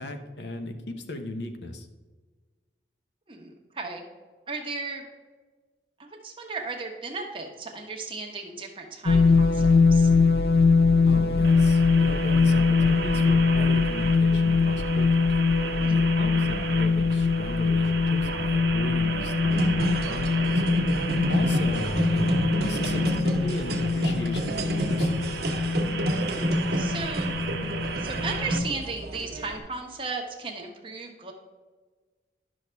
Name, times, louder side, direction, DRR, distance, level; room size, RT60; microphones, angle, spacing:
voice 1, 0.0-1.9 11.1-15.3 15.9-20.6 21.3-25.3, left 1 dB, 75° left, 6 dB, 0.9 m, -36 dB
voice 2, 3.3-4.0 4.5-5.1 6.0-10.1 15.8-16.0 19.8-20.1 26.8-27.4 28.0-31.3, right 4 dB, 30° right, 1 dB, 1.2 m, -36 dB
sound 1, 9.1-28.6, left 4 dB, 60° left, 0.5 m, -23 dB
sound 2, 11.4-28.6, right 4 dB, 85° right, 0.8 m, -34 dB
sound 3, 19.5-29.6, right 1 dB, 60° right, 1.3 m, -29 dB
10.5 x 6.3 x 3.4 m, 1.4 s
head